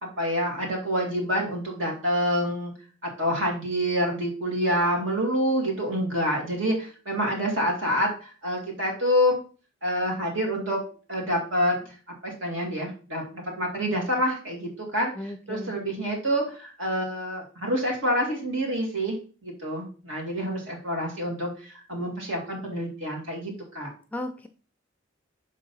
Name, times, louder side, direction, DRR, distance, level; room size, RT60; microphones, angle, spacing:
voice 1, 0.0-2.7 3.2-9.4 9.8-10.8 11.1-11.8 12.2-19.2 19.4-23.9, equal, 70° right, -1 dB, 2.4 m, -27 dB
voice 2, 15.2-15.7 24.1-24.5, left 1 dB, 10° left, 7 dB, 0.4 m, -35 dB
5.4 x 3.8 x 5.4 m, 0.37 s
head